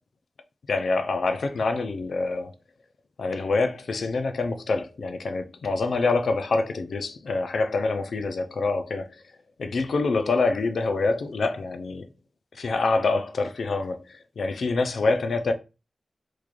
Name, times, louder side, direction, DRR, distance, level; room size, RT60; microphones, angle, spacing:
voice 1, 0.7-2.5 3.2-9.1 9.6-12.1 12.6-15.5, left 3 dB, 75° left, 0.4 m, -26 dB
3.1 x 2.4 x 3.6 m
wide cardioid pair, 100°, 0 cm